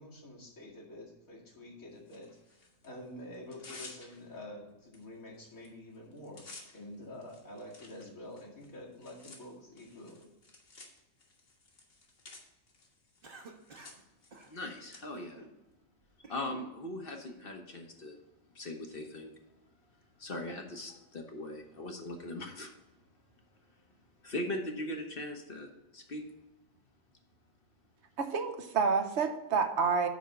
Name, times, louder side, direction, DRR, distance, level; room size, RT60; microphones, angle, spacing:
voice 1, 0.0-6.4 6.7-10.3, left 1 dB, 80° left, -4 dB, 2.7 m, -48 dB
Tearing, 2.1-2.9 3.3-4.4 4.9-5.0 5.3-5.7 5.9-15.0, left 3 dB, 60° left, 1.8 m, -54 dB
Cough, 13.2-14.0 14.3-14.5 15.1-15.6 16.0-16.7, right 3 dB, 45° right, 1.3 m, -50 dB
voice 2, 14.5-15.4 16.3-18.2 18.5-19.3 20.2-22.7 24.2-26.2, left 1 dB, 45° left, 3 dB, 1.1 m, -40 dB
voice 3, 28.2-30.1, right 5 dB, 60° right, 6 dB, 1.0 m, -29 dB
9.4 x 3.6 x 6.5 m, 1.0 s
omnidirectional pair, 1.4 m